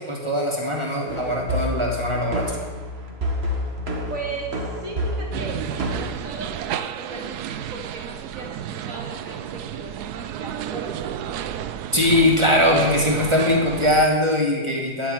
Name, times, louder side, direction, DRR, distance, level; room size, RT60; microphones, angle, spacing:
voice 1, 0.0-2.7 11.9-15.1, left 1 dB, 20° right, -1 dB, 2.8 m, -21 dB
sound 1, 1.1-6.1, equal, 40° right, 1.9 m, -29 dB
voice 2, 4.1-11.1, right 3 dB, 60° right, 0 dB, 2.9 m, -37 dB
sound 2, 5.3-14.1, right 10 dB, 85° right, 1.2 m, -32 dB
9.9 x 9.1 x 9.5 m, 1.3 s
omnidirectional pair, 1.6 m